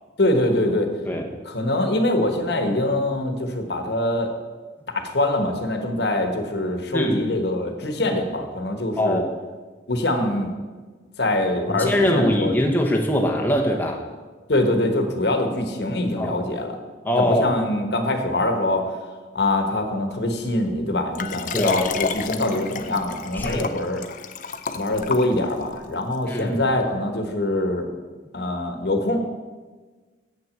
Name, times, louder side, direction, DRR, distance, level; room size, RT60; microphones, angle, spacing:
voice 1, 0.2-0.9 1.4-4.3 4.9-9.2 9.9-10.5 11.2-12.5 14.5-16.8 17.2-18.9 19.3-24.0 24.7-27.9 28.3-29.2, left 1 dB, 70° left, 5 dB, 1.1 m, -23 dB
voice 2, 9.0-9.3 11.7-14.1 16.2-16.4 17.0-17.5 21.5-21.8 23.3-23.7 26.3-26.6, equal, 10° left, 0 dB, 0.8 m, -22 dB
Liquid, 21.2-25.7 26.4-26.5, left 5 dB, 45° left, 0.5 m, -30 dB
7.7 x 6.0 x 7.7 m, 1.4 s
head